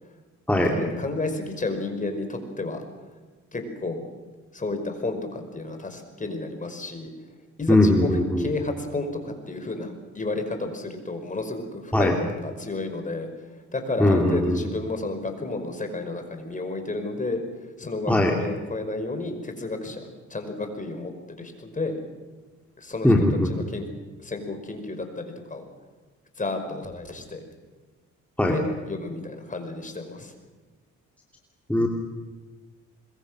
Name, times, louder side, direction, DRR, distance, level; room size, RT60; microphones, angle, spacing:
voice 1, 0.6-2.8 3.5-4.0 4.5-7.1 7.6-13.3 13.7-17.4 17.8-20.0 20.3-22.0 22.8-23.1 23.5-23.9 24.2-25.6 26.4-27.4 28.5-30.3, left 2 dB, 25° left, 6 dB, 5.3 m, -31 dB
voice 2, 7.7-8.5 11.9-12.1 14.0-14.6 18.1-18.3 23.0-23.5 28.4-28.5 31.7-31.9, left 1 dB, 5° left, 0 dB, 3.1 m, -20 dB
25.5 x 22.0 x 6.4 m, 1.4 s
cardioid pair, 90°, 30 cm